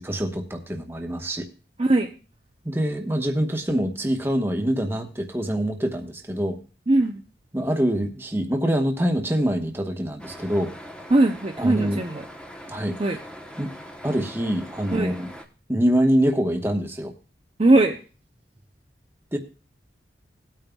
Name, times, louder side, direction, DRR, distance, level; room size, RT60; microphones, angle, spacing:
voice 1, 0.0-1.5 2.6-6.6 7.5-10.7 11.6-12.0 12.7-13.0 13.6-13.7 14.0-15.3 15.7-17.1 19.3-19.4, equal, 15° right, 4 dB, 1.2 m, -25 dB
voice 2, 6.9-7.2 11.1-12.2 12.7-13.2 14.9-15.1 17.6-18.0, right 2 dB, 30° right, 2 dB, 0.7 m, -20 dB
sound 1, 10.2-15.5, equal, 5° left, 1.0 m, -42 dB
18.0 x 9.0 x 2.3 m, 0.34 s
head